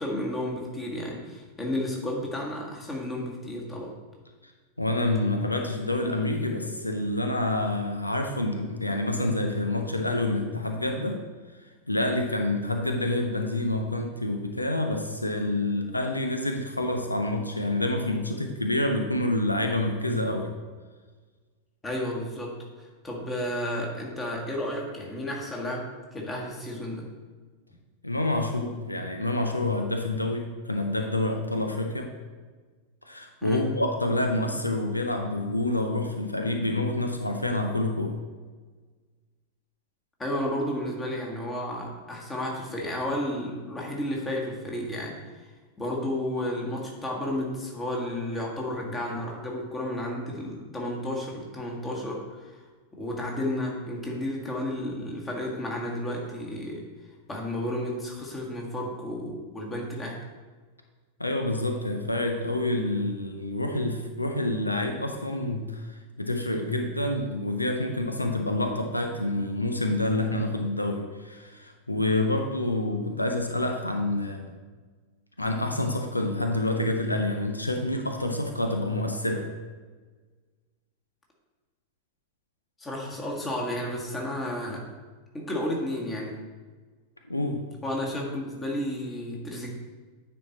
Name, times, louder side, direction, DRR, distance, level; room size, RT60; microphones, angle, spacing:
voice 1, 0.0-3.9 21.8-27.1 33.4-33.6 40.2-45.2 45.8-52.6 52.9-56.8 57.3-60.2 82.8-84.8 85.3-86.4 87.8-89.7, left 1 dB, 15° left, -1 dB, 1.7 m, -32 dB
voice 2, 4.8-11.2 11.9-20.5 28.0-32.2 33.1-38.2 61.2-74.5 75.4-79.5 87.3-87.7, left 1 dB, 85° left, 4 dB, 0.6 m, -27 dB
9.5 x 4.4 x 4.1 m, 1.4 s
figure-of-eight pair, 90°, 0 cm